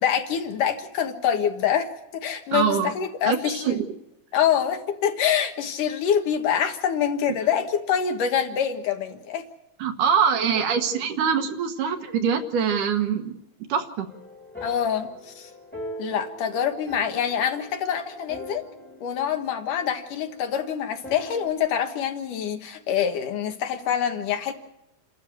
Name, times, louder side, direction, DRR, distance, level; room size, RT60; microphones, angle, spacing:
voice 1, 0.0-3.8 4.3-9.5 14.6-15.5 16.0-18.7 19.0-24.5, left 8 dB, 65° left, 6 dB, 2.9 m, -25 dB
voice 2, 2.5-2.9 3.2-3.4 3.7-3.9 9.8-13.4 13.7-14.1, right 7 dB, 65° right, 6 dB, 2.7 m, -23 dB
sound 1, 14.1-21.5, equal, 5° left, 1.7 m, -42 dB
28.5 x 13.0 x 7.9 m, 0.87 s
omnidirectional pair, 4.2 m